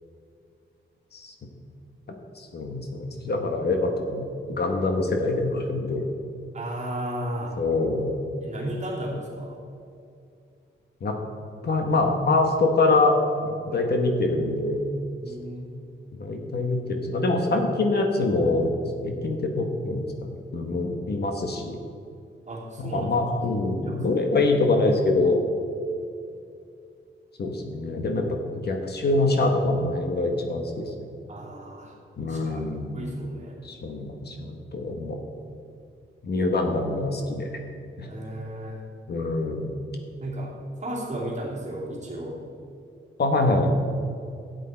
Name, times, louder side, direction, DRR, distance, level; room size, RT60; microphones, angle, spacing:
voice 1, 2.4-6.0 7.6-8.2 11.0-11.1 11.6-13.2 13.4-14.8 16.2-18.7 19.0-21.8 22.8-25.4 27.4-31.1 32.2-33.0 33.6-35.2 36.2-37.5 38.0-38.1 39.1-39.7 43.2-43.7, left 2 dB, 50° left, 3 dB, 1.2 m, -25 dB
voice 2, 6.5-7.5 8.4-9.6 13.7-13.9 15.2-15.7 22.5-23.1 23.8-24.0 31.3-31.9 32.3-32.6 32.9-33.6 38.1-38.8 40.2-42.4, right 1 dB, 35° right, -4 dB, 2.6 m, -34 dB
12.5 x 8.1 x 4.4 m, 2.5 s
wide cardioid pair, 165°, 21 cm